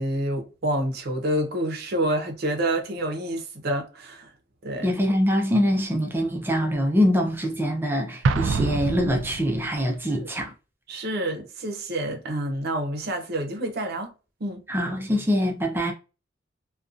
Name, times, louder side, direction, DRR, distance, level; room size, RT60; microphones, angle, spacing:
voice 1, 0.0-4.3 4.6-4.9 10.1-10.3 10.9-14.1 14.4-14.6, right 1 dB, 55° right, 0.6 m, -28 dB
voice 2, 4.8-10.5 14.7-15.9, equal, 10° right, 0.4 m, -24 dB
Explosion, 8.2-9.9, right 4 dB, 90° right, 0.3 m, -26 dB
2.5 x 2.2 x 2.4 m
head